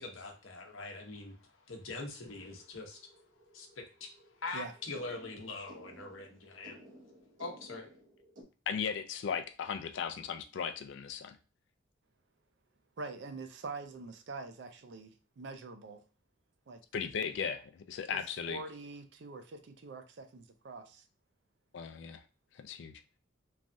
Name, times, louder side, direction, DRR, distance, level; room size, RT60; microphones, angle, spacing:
voice 1, 0.0-3.0 3.5-4.1 4.4-6.8 7.4-7.9, left 3 dB, 85° left, 0.8 m, -43 dB
sound 1, 1.9-8.4, equal, 80° right, 0.9 m, -57 dB
voice 2, 8.7-11.4 16.9-18.6 21.7-22.2 22.5-23.0, left 6 dB, 65° left, 0.4 m, -37 dB
voice 3, 13.0-16.0 16.7-16.8 17.4-17.5 18.1-18.2 18.5-21.0, right 3 dB, 60° right, 0.4 m, -45 dB
3.2 x 2.2 x 2.6 m
head